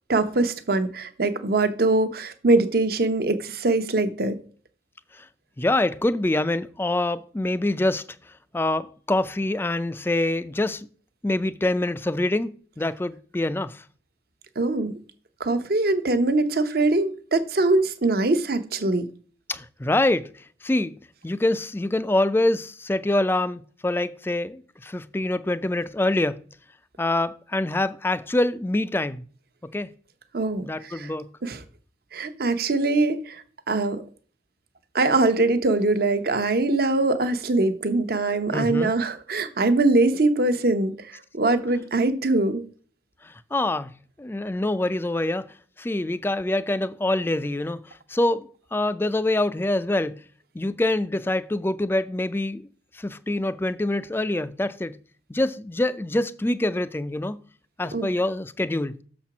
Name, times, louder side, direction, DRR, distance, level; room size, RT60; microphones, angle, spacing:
voice 1, 0.1-4.4 14.6-14.9 15.4-19.1 30.3-31.1 31.4-31.6 32.1-33.4 33.7-34.0 34.9-40.9 41.3-42.6 57.9-58.1, right 2 dB, 55° right, 0.8 m, -22 dB
voice 2, 5.6-8.0 8.5-10.9 11.2-13.8 19.5-20.3 20.6-20.9 21.2-26.4 27.0-29.2 29.7-29.9 30.6-31.3 38.5-38.9 43.2-43.9 44.2-45.5 45.8-50.2 50.5-52.7 52.9-55.0 55.3-57.4 57.8-59.0, left 1 dB, 10° left, 0.3 m, -25 dB
6.7 x 4.3 x 5.9 m
head